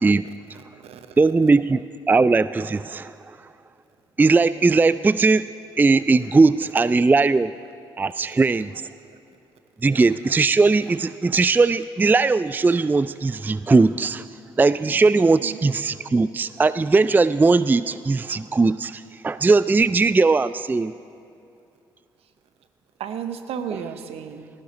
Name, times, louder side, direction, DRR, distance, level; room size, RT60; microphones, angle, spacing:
voice 1, 0.2-1.3 8.3-8.4 9.1-9.2 15.4-15.6 22.2-22.3 23.0-24.5, right 8 dB, 65° right, 10 dB, 0.9 m, -35 dB
voice 2, 1.2-3.1 4.2-5.4 5.8-7.5 8.0-8.7 9.8-14.2 14.6-20.9, right 3 dB, 15° right, 16 dB, 0.3 m, -19 dB
18.5 x 15.0 x 4.0 m, 2.6 s
hypercardioid pair, 45°, 11 cm